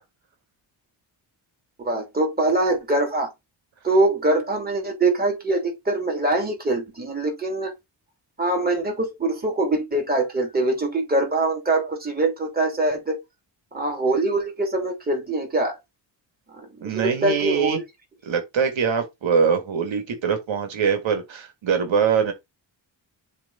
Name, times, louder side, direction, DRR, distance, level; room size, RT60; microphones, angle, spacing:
voice 1, 1.8-3.3 3.8-7.7 8.4-13.2 13.7-15.8 16.5-17.8, right 2 dB, 20° right, 3.1 m, -23 dB
voice 2, 16.8-17.8 18.2-22.3, right 6 dB, 80° right, 1.9 m, -23 dB
7.5 x 3.4 x 4.8 m
wide cardioid pair, 145°, 45 cm